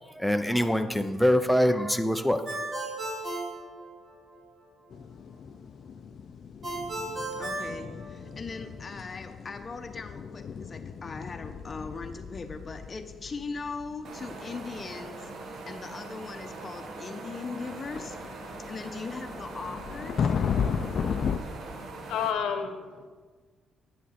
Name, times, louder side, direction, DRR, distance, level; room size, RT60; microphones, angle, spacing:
voice 1, 0.1-2.4 2.8-2.9, equal, ahead, 7 dB, 0.5 m, -24 dB
Ringtone, 2.5-4.4 6.6-8.6, right 2 dB, 30° right, 2.6 m, -35 dB
sound 1, 4.9-21.4, left 6 dB, 60° left, 0.4 m, -35 dB
voice 2, 7.1-20.3, left 4 dB, 35° left, 6 dB, 0.8 m, -40 dB
sound 2, 14.0-22.3, right 3 dB, 65° right, 1.1 m, -42 dB
voice 3, 21.7-23.1, left 7 dB, 85° left, 7 dB, 0.8 m, -32 dB
9.2 x 7.3 x 4.3 m, 1.5 s
cardioid pair, 90°, 0 cm